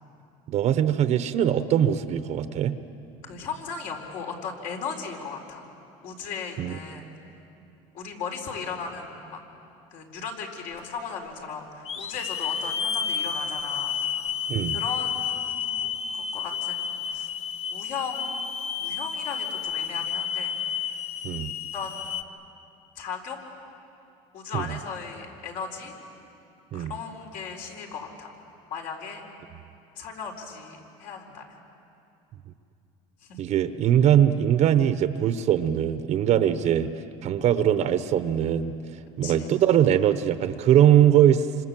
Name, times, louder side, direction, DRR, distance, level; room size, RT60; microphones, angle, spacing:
voice 1, 0.5-2.8 6.6-6.7 14.5-14.8 21.2-21.5 24.5-24.7 26.7-26.9 33.4-36.9 37.2-38.7 39.2-41.5, right 10 dB, 50° right, 11 dB, 1.0 m, -21 dB
voice 2, 3.2-5.7 6.0-7.1 7.9-9.4 9.9-14.0 14.7-17.3 17.6-18.4 18.8-21.0 21.7-22.2 22.9-23.4 24.3-25.9 26.7-28.3 28.7-29.2 29.9-31.6 33.2-33.5 39.2-39.5, left 5 dB, 60° left, 2 dB, 4.5 m, -37 dB
Hiss / Alarm, 10.8-10.9 11.8-22.2, left 7 dB, 45° left, 1.3 m, -31 dB
29.0 x 26.0 x 7.6 m, 2.7 s
cardioid pair, 125°, 15 cm